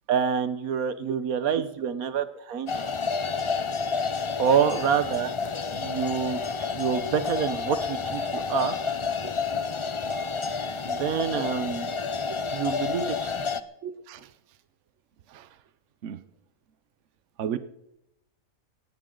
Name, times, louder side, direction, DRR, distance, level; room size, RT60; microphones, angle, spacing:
voice 1, 0.1-2.8 4.4-5.3 5.7-6.4 6.7-8.8 10.8-11.9 12.5-13.3, right 7 dB, 75° right, 13 dB, 1.4 m, -27 dB
sound 1, 2.7-13.6, left 5 dB, 50° left, 0.3 m, -30 dB
voice 2, 13.8-14.3 15.3-15.6 16.0-16.2 17.4-17.6, right 8 dB, 60° right, 13 dB, 1.0 m, -34 dB
17.5 x 16.5 x 3.9 m, 0.82 s
omnidirectional pair, 1.5 m